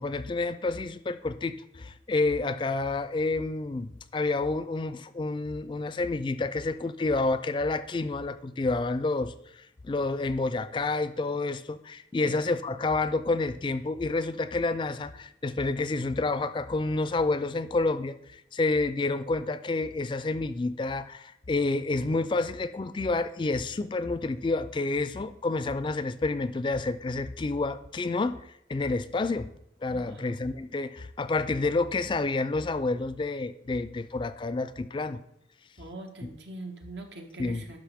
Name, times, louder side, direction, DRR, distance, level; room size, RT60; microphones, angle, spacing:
voice 1, 0.0-28.4 28.7-29.5 29.8-35.2 36.2-36.3 37.4-37.7, left 3 dB, 30° left, 13 dB, 0.3 m, -29 dB
voice 2, 29.9-30.4 35.8-37.8, right 2 dB, 85° right, 3 dB, 1.4 m, -42 dB
11.5 x 6.0 x 3.5 m, 0.78 s
head